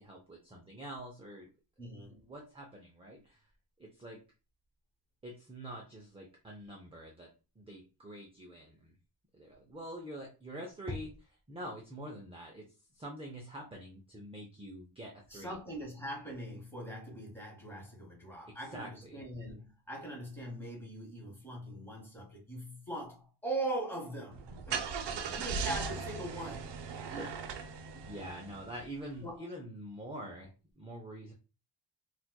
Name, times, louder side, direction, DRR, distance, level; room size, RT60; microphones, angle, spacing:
voice 1, 0.0-1.5 2.1-3.5 3.8-4.2 5.2-9.0 9.3-12.7 12.9-15.6 18.5-19.2 25.0-25.5 27.1-31.3, right 1 dB, 15° right, 0.5 m, -46 dB
voice 2, 1.8-2.3 15.3-26.7 27.9-28.1 29.2-29.4, right 1 dB, 5° left, 1.1 m, -41 dB
Car / Engine starting, 24.3-29.0, right 5 dB, 70° right, 0.6 m, -38 dB
4.2 x 2.3 x 2.2 m
wide cardioid pair, 120°, 44 cm